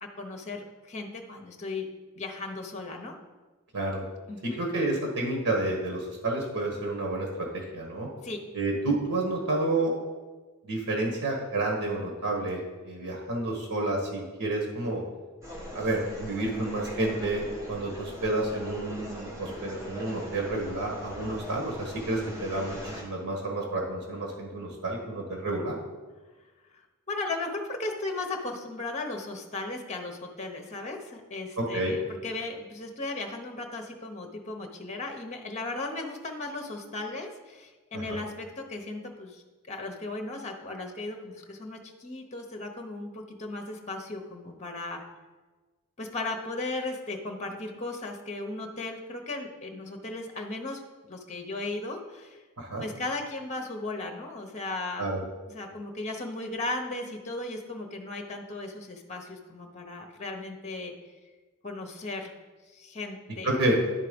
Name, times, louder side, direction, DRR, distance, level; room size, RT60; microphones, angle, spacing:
voice 1, 0.0-1.9 2.2-3.2 4.3-4.6 8.2-8.4 26.7-45.0 46.0-50.8 51.1-52.4 52.8-55.1 55.5-60.9 61.6-62.3 62.7-63.5, left 2 dB, 30° left, 3 dB, 0.9 m, -36 dB
voice 2, 4.6-8.1 8.5-10.0 10.6-15.0 15.7-25.8 31.6-32.0 37.9-38.2 52.6-52.8 55.0-55.2 63.4-63.8, right 2 dB, 85° right, 0 dB, 1.4 m, -30 dB
sound 1, 15.4-23.0, equal, 15° right, 1.4 m, -41 dB
11.0 x 3.7 x 5.2 m, 1.3 s
head